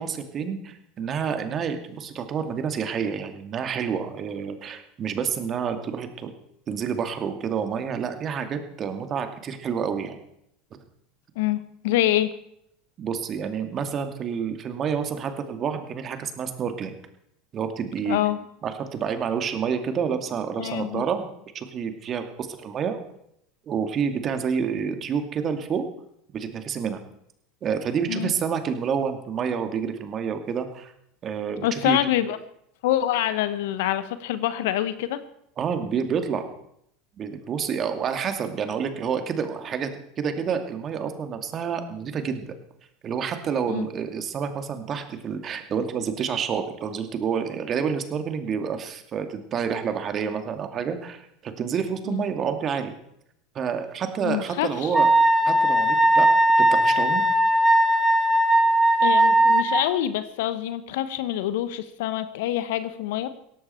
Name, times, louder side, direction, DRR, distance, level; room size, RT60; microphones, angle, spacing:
voice 1, 0.0-6.3 6.7-10.2 13.0-17.0 17.5-18.2 18.6-21.3 21.5-23.0 23.7-25.8 26.3-27.0 27.6-30.9 31.2-32.0 35.6-36.5 37.2-39.9 40.2-42.6 43.0-52.9 53.5-55.1 55.5-56.3 56.6-57.2, right 7 dB, 40° right, 7 dB, 2.4 m, -28 dB
voice 2, 11.3-12.3 18.0-18.4 20.6-21.0 28.1-28.3 31.6-32.4 32.8-35.2 43.7-43.9 52.1-52.2 54.2-54.9 59.0-63.3, left 13 dB, 70° left, 13 dB, 1.1 m, -26 dB
Wind instrument woodwind instrument, 54.9-59.8, right 1 dB, 5° right, 1.8 m, -18 dB
17.5 x 14.5 x 4.5 m, 0.74 s
hypercardioid pair, 80°, 0 cm